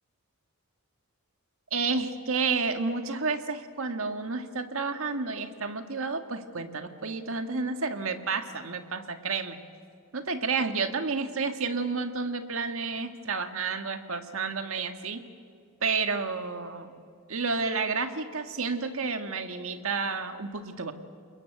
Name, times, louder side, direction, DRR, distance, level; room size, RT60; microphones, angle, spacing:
voice 1, 1.7-9.6 10.1-15.2 15.8-16.9 17.3-20.9, right 4 dB, 65° right, 7 dB, 1.8 m, -30 dB
27.5 x 22.0 x 8.1 m, 2.3 s
head